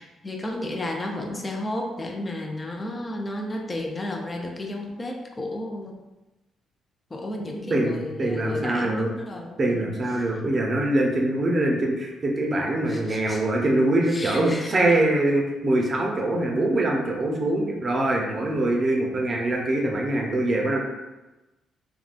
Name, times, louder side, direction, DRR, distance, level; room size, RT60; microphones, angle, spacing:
voice 1, 0.0-5.9 7.1-9.9 12.9-13.4 14.1-15.0, left 1 dB, 25° left, 1 dB, 0.4 m, -32 dB
voice 2, 7.5-9.1 9.6-20.8, right 1 dB, 40° right, -1 dB, 0.6 m, -23 dB
3.6 x 2.3 x 2.4 m, 1.1 s
cardioid pair, 90°, 0 cm